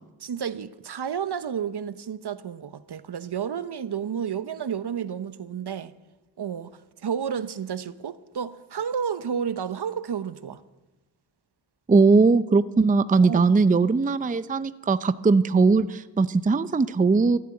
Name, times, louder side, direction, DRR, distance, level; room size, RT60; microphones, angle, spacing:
voice 1, 0.2-5.9 6.4-6.7 7.0-10.6 13.2-13.5, right 7 dB, 60° right, 0.8 m, -31 dB
voice 2, 11.9-17.4, right 4 dB, 20° right, 0.5 m, -20 dB
14.0 x 9.4 x 8.7 m
cardioid pair, 50°, 45 cm